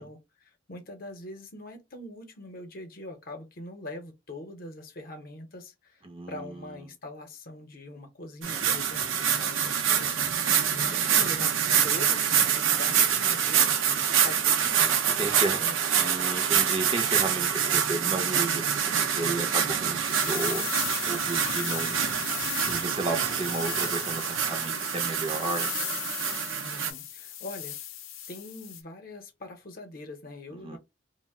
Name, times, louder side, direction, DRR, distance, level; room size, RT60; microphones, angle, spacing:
voice 1, 0.0-11.5 11.8-13.7 14.1-15.8 26.6-27.8 28.3-30.8, left 2 dB, 45° left, 0.7 m, -43 dB
voice 2, 6.0-6.8 10.9-11.4 15.2-15.6 15.9-22.3 22.6-25.7 30.5-30.8, right 3 dB, 25° right, 0.5 m, -34 dB
sound 1, 8.4-26.9, right 8 dB, 75° right, 0.6 m, -26 dB
sound 2, 20.0-28.8, left 11 dB, 85° left, 0.5 m, -37 dB
2.4 x 2.1 x 3.5 m
head